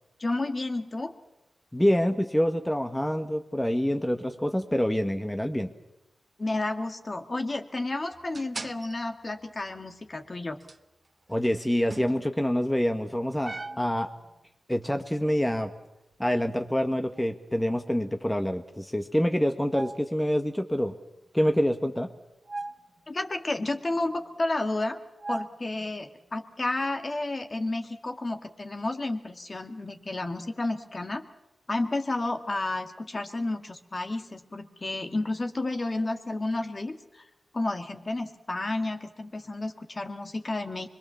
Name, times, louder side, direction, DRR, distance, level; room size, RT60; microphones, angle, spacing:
voice 1, 0.2-1.1 6.4-10.6 23.1-25.0 25.3-31.2 31.7-37.2 37.5-40.9, left 2 dB, 40° left, 5 dB, 2.2 m, -31 dB
voice 2, 1.7-5.7 11.3-14.1 14.7-15.7 16.2-20.9 21.3-22.1, equal, 10° left, 5 dB, 1.6 m, -26 dB
sound 1, 8.1-9.0 10.3-10.4 10.6-10.8 11.3-11.5 11.9-12.5 13.1-14.3 15.5-15.8 16.8-17.4 19.7-20.1 22.5-23.0 23.9-24.2 25.2-26.0, right 2 dB, 40° right, 1.0 m, -40 dB
25.5 x 22.5 x 7.2 m, 0.93 s
cardioid pair, 55°, 0 cm